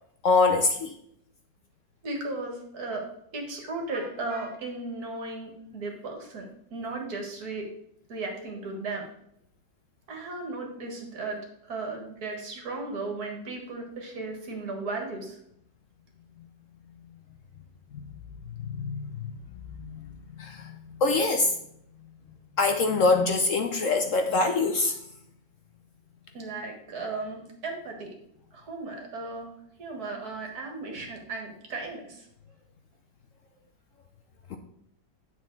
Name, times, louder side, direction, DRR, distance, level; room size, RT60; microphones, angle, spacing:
voice 1, 0.2-0.9 17.9-18.1 18.5-19.3 19.8-20.0 20.4-21.5 22.6-25.0 34.5-34.6, left 3 dB, 65° left, 5 dB, 0.8 m, -24 dB
voice 2, 2.0-3.0 3.3-7.7 8.1-9.1 10.1-11.4 11.6-15.4 26.3-28.1 28.5-29.5 29.8-32.3, right 3 dB, 55° right, 2 dB, 2.2 m, -35 dB
8.9 x 6.4 x 4.0 m, 0.72 s
omnidirectional pair, 2.0 m